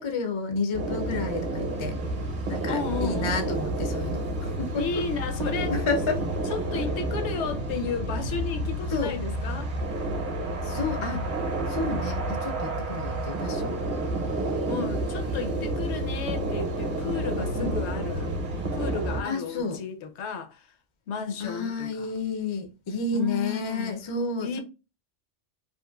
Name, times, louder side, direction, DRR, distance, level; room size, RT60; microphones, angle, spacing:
voice 1, 0.0-1.9 2.5-4.9 5.7-6.2 8.9-9.1 10.6-11.3 11.7-13.8 17.5-17.7 19.2-19.8 21.4-24.6, left 3 dB, 50° left, 0.3 m, -30 dB
sound 1, 0.7-19.2, right 1 dB, 50° right, 0.8 m, -30 dB
voice 2, 2.7-3.6 4.8-5.8 6.5-9.7 14.7-18.3 18.7-20.7 21.1-22.1 23.1-24.0 24.4-24.6, left 5 dB, 75° left, 0.8 m, -33 dB
2.9 x 2.4 x 2.2 m
omnidirectional pair, 1.2 m